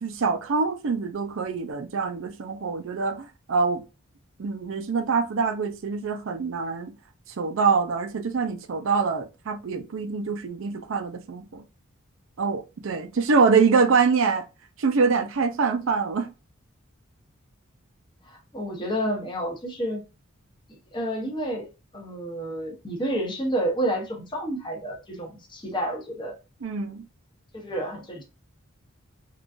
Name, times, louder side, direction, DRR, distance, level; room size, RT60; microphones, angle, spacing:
voice 1, 0.0-3.8 4.4-6.9 7.4-11.6 12.4-14.4 14.8-16.3 26.6-27.0, right 5 dB, 65° right, 0.5 m, -25 dB
voice 2, 18.2-20.0 20.9-26.3 27.5-28.2, right 1 dB, 20° left, 0.8 m, -30 dB
3.7 x 2.4 x 2.4 m
head